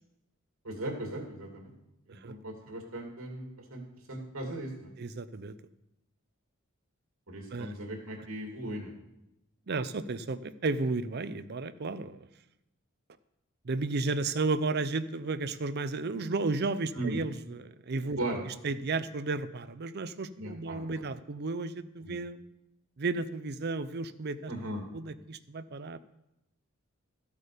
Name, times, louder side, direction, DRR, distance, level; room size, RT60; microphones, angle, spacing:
voice 1, 0.6-1.7 2.1-3.8 4.1-4.9 7.3-8.9 16.9-17.2 18.2-18.4 20.4-20.8 22.0-22.2 24.5-24.8, right 1 dB, 75° right, 2 dB, 2.8 m, -37 dB
voice 2, 5.0-5.6 7.5-7.7 9.7-12.3 13.6-18.2 18.6-22.4 23.0-24.5 24.9-26.0, right 3 dB, 50° right, 14 dB, 0.6 m, -33 dB
13.5 x 8.4 x 5.1 m, 0.88 s
head